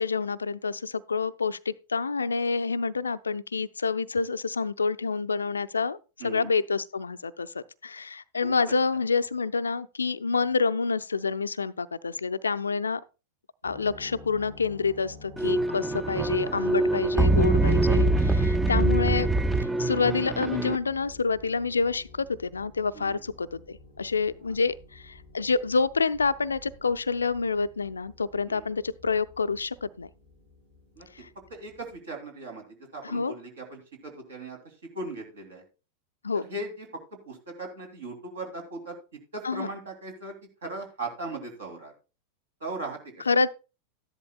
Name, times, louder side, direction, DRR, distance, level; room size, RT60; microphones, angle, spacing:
voice 1, 0.0-13.0 13.6-19.3 19.6-30.1 31.1-31.3 33.0-33.3 36.2-36.4 39.4-39.7 43.3-43.5, left 4 dB, 75° left, 0.4 m, -28 dB
sound 1, 13.6-32.0, left 3 dB, 90° right, 7.2 m, -50 dB
sound 2, 15.4-20.8, right 2 dB, 10° right, 0.5 m, -24 dB
voice 2, 16.0-16.6 18.6-18.9 22.9-23.2 28.5-28.7 31.0-31.1 31.5-32.7 32.9-34.6 34.9-35.6 36.3-39.0 39.3-40.3 40.6-41.9 42.6-43.3, right 2 dB, 65° right, 2.9 m, -38 dB
13.5 x 11.0 x 2.3 m
figure-of-eight pair, 90°, 0 cm